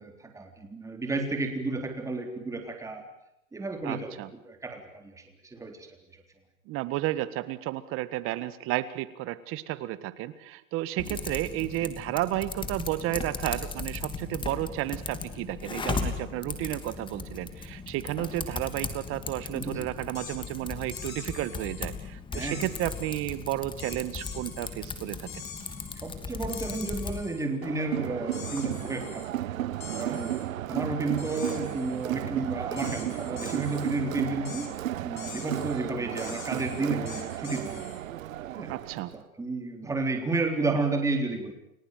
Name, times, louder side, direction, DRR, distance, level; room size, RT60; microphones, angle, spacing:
voice 1, 0.0-3.1 3.5-5.2 5.5-5.9 11.0-11.2 19.5-19.9 22.3-22.7 26.0-29.3 29.9-34.7 35.0-37.9 38.6-38.7 39.1-41.5, right 3 dB, 5° right, 5 dB, 3.8 m, -32 dB
voice 2, 3.8-4.3 6.7-25.2 29.9-30.2 38.7-39.1, right 15 dB, 30° right, 15 dB, 1.7 m, -32 dB
Typing, 11.0-27.2, left 4 dB, 10° left, 2.9 m, -37 dB
sound 1, 20.1-20.5 20.9-21.9 22.3-23.2 23.8-24.7 25.3-26.1 26.5-27.5 28.3-29.3 29.8-30.5 31.2-32.1 32.8-34.0 34.5-34.7 35.2-35.8 36.2-38.0, left 7 dB, 80° left, 7.3 m, -44 dB
Crowd, 27.6-39.2, right 13 dB, 70° right, 1.4 m, -34 dB
30.0 x 17.5 x 9.3 m, 0.82 s
hypercardioid pair, 145°, 41 cm